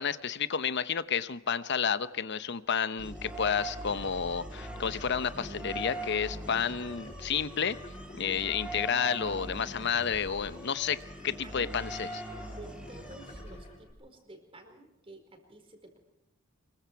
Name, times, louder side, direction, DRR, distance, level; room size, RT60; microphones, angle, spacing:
voice 1, 0.0-7.8 8.2-11.0 11.2-12.2, left 7 dB, 60° left, 14 dB, 0.9 m, -31 dB
sound 1, 3.0-13.9, equal, 5° right, 5.4 m, -41 dB
sound 2, 4.8-13.8, left 1 dB, 35° left, 6.0 m, -53 dB
voice 2, 11.4-11.7 12.5-16.0, right 1 dB, 30° right, 5 dB, 4.7 m, -51 dB
25.0 x 23.0 x 4.7 m, 0.88 s
head